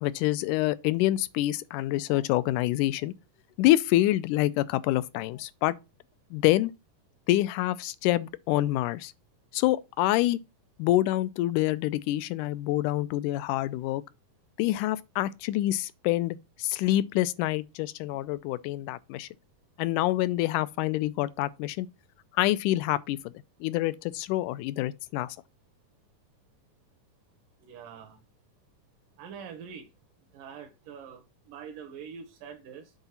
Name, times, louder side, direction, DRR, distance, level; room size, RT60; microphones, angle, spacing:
voice 1, 0.0-3.1 3.6-5.7 6.3-6.7 7.3-9.1 9.5-10.4 10.8-14.0 14.6-19.3 19.8-21.9 22.3-23.3 23.6-25.4, left 15 dB, 80° left, 2.0 m, -26 dB
voice 2, 27.6-28.2 29.2-29.9 30.3-32.9, right 7 dB, 80° right, 2.7 m, -44 dB
8.2 x 3.9 x 5.7 m
omnidirectional pair, 3.7 m